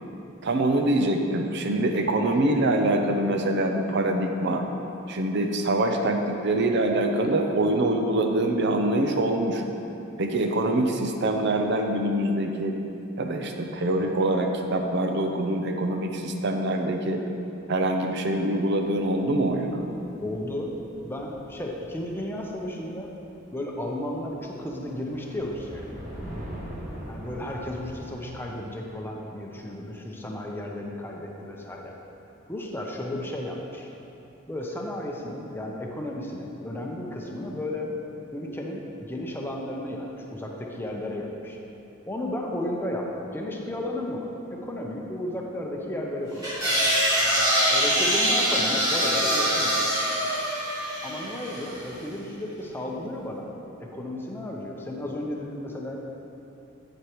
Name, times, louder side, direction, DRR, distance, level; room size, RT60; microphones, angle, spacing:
voice 1, 0.4-4.6 5.1-9.6 10.2-12.8 13.2-17.2 17.7-19.8, right 1 dB, 60° right, 3 dB, 0.6 m, -24 dB
sound 1, 18.8-23.4 23.7-23.9 24.3-28.1, equal, 35° right, 1.5 m, -42 dB
voice 2, 20.2-20.7 21.0-23.1 23.5-25.9 27.1-31.9 32.5-33.9 34.5-37.9 38.3-41.6 42.1-46.5 47.7-49.8 51.0-53.5 53.8-56.0, left 1 dB, 10° left, -1 dB, 0.7 m, -33 dB
sound 2, 46.4-51.8, equal, 20° right, 1.9 m, -24 dB
8.6 x 8.0 x 3.0 m, 2.9 s
head